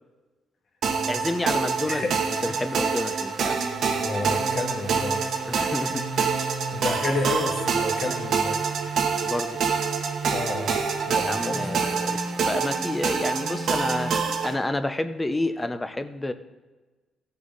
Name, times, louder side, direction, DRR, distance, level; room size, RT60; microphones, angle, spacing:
sound 1, 0.8-14.5, right 5 dB, 65° right, 1.3 m, -26 dB
voice 1, 1.1-2.1 2.4-3.6 5.5-6.0 9.2-9.6 11.2-14.1 14.4-16.3, left 2 dB, 15° left, 10 dB, 0.8 m, -29 dB
voice 2, 1.9-2.2 2.5-2.6 4.0-5.2 6.7-8.6 10.3-10.8 11.1-11.8, left 2 dB, 50° left, 2 dB, 1.8 m, -30 dB
15.0 x 6.7 x 4.0 m, 1.2 s
cardioid pair, 90°, 0 cm